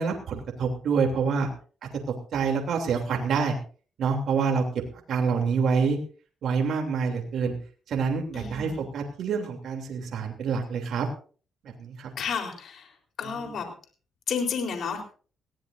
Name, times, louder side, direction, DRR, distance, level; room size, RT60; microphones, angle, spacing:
voice 1, 0.0-1.5 2.3-3.6 4.0-4.6 5.1-6.0 6.4-7.5 7.9-11.1 11.8-12.1 13.2-13.5, right 5 dB, 70° right, 2 dB, 3.0 m, -27 dB
voice 2, 8.3-8.8 12.2-12.9 13.2-13.7 14.3-15.0, left 6 dB, 60° left, 3 dB, 4.1 m, -31 dB
20.5 x 16.5 x 2.7 m, 0.40 s
cardioid pair, 90°, 0 cm